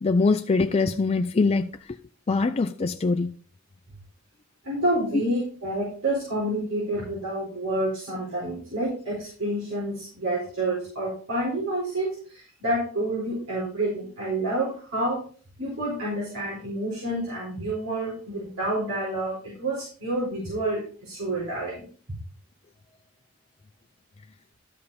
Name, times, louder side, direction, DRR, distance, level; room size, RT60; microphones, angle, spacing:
voice 1, 0.0-1.7 2.3-3.3 5.1-5.2, left 3 dB, 30° left, 0.4 m, -23 dB
voice 2, 4.6-15.2 15.6-21.8, right 1 dB, 85° right, 4.4 m, -28 dB
12.5 x 5.5 x 4.1 m
head